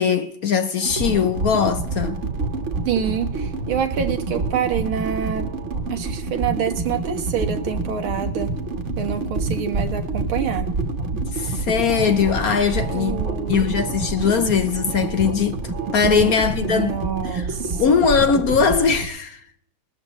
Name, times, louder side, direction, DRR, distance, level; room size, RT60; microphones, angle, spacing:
voice 1, 0.0-2.2 11.1-17.5 17.8-19.4, left 6 dB, 60° left, 1.1 m, -21 dB
sound 1, 0.8-19.1, right 3 dB, 40° right, 1.5 m, -27 dB
voice 2, 2.9-5.5 5.9-8.6 9.0-10.7 12.9-13.7 16.0-16.3 16.6-17.8, right 8 dB, 90° right, 2.2 m, -27 dB
19.5 x 13.5 x 3.1 m
omnidirectional pair, 2.2 m